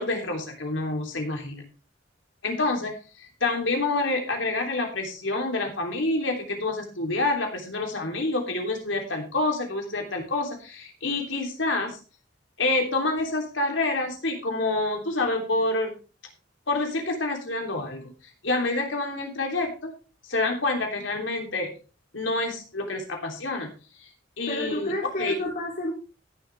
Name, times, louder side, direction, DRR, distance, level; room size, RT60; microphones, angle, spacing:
voice 1, 0.0-1.6 2.4-2.9 3.2-12.0 12.6-15.9 16.7-18.1 18.4-19.7 20.3-21.7 22.1-23.7 24.0-24.1 24.4-24.9 25.2-25.4, left 2 dB, 85° left, 2 dB, 3.3 m, -27 dB
voice 2, 24.5-25.9, left 1 dB, 50° left, -4 dB, 3.6 m, -30 dB
17.0 x 7.2 x 3.5 m, 0.35 s
head